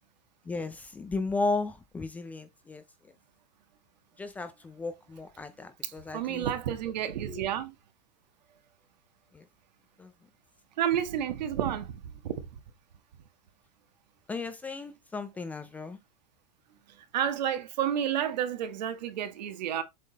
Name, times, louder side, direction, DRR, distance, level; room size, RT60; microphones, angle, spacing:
voice 1, 0.5-2.8 4.2-6.5 7.3-7.5 9.3-9.5 10.0-10.1 14.3-16.0, left 3 dB, 5° left, 0.4 m, -35 dB
voice 2, 5.8-7.7 10.8-12.3 17.1-19.8, right 10 dB, 85° right, 1.5 m, -30 dB
7.4 x 3.8 x 4.0 m
supercardioid pair, 170°, 21 cm